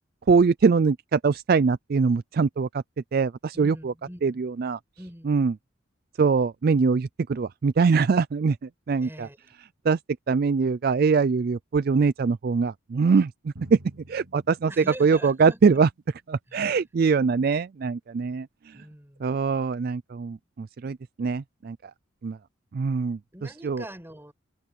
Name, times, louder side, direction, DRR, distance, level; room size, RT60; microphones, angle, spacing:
voice 1, 0.3-2.8 3.1-3.9 4.2-4.8 5.3-5.5 6.2-8.6 8.9-9.3 9.9-10.0 10.3-13.8 14.1-15.9 16.3-18.8 19.2-21.8 22.2-22.4 22.7-23.2 23.6-23.8, right 5 dB, 45° right, 0.3 m, -23 dB
voice 2, 3.5-4.4 5.0-5.4 9.0-9.4 14.7-15.6 16.5-16.8 18.7-19.4 23.3-24.3, right 1 dB, 10° right, 5.4 m, -43 dB
Drum, 13.6-15.9, right 1 dB, 85° right, 2.7 m, -49 dB
head